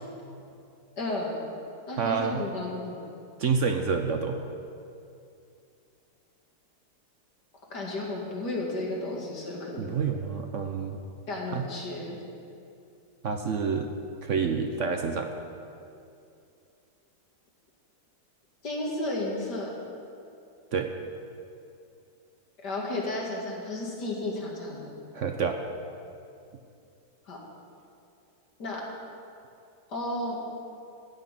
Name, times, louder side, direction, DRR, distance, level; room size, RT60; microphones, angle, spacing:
voice 1, 1.0-1.4 1.9-3.0 7.7-9.9 11.3-12.2 18.6-19.7 22.6-24.9 27.3-27.4 28.6-28.9 29.9-30.3, left 2 dB, 75° left, -2 dB, 2.9 m, -33 dB
voice 2, 2.0-2.4 3.4-4.4 9.8-11.0 11.5-11.7 13.2-13.9 14.2-15.3 20.7-20.9 25.1-25.6, right 5 dB, 60° right, 5 dB, 0.9 m, -28 dB
14.5 x 6.2 x 9.1 m, 2.6 s
omnidirectional pair, 1.8 m